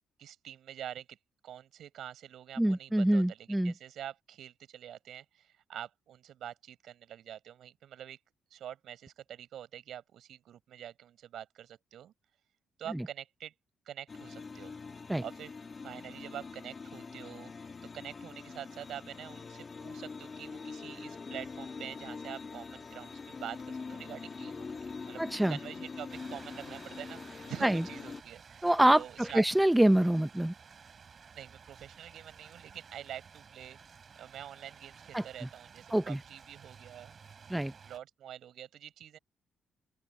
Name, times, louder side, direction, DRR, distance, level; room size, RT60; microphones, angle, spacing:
voice 1, 0.2-1.2 1.4-8.2 8.5-12.1 12.8-13.5 13.9-14.7 15.2-15.5 15.8-25.2 25.5-29.5 31.3-33.8 34.2-37.1 37.8-39.2, right 10 dB, 70° right, 6.2 m, -46 dB
voice 2, 2.6-3.7 15.1-15.2 25.2-25.6 27.6-27.8 28.6-30.5 35.1-35.2 35.9-36.2 37.5-37.7, right 1 dB, 5° right, 0.6 m, -25 dB
sound 1, 14.1-28.2, left 4 dB, 35° left, 2.6 m, -44 dB
sound 2, 26.1-38.0, right 6 dB, 45° right, 6.2 m, -54 dB
open air
cardioid pair, 90°, 0 cm